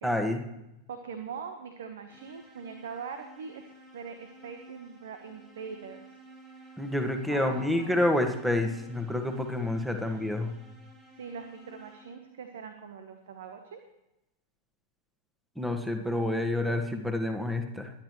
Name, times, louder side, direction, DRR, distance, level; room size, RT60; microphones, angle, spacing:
voice 1, 0.0-0.4 6.8-10.5 15.6-17.9, left 1 dB, 5° right, 5 dB, 1.7 m, -28 dB
voice 2, 0.9-3.6 3.9-6.1 6.6-6.7 7.3-8.0 10.0-10.1 11.1-13.8, right 6 dB, 60° right, 7 dB, 1.2 m, -42 dB
sound 1, 2.1-12.4, right 2 dB, 30° right, 5.4 m, -53 dB
22.5 x 10.5 x 3.2 m, 0.93 s
figure-of-eight pair, 90°, 0 cm